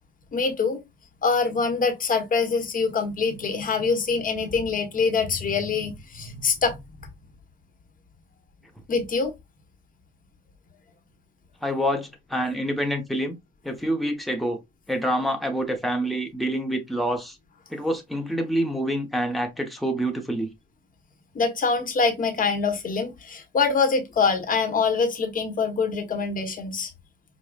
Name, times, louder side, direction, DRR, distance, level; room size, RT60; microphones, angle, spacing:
voice 1, 0.3-0.8 1.2-6.8 8.9-9.3 21.3-26.9, left 4 dB, 45° left, 1.0 m, -24 dB
voice 2, 11.6-13.4 13.6-14.6 14.9-17.4 17.7-20.5, equal, ahead, 1.0 m, -27 dB
4.8 x 2.2 x 2.4 m
cardioid pair, 90°, 20 cm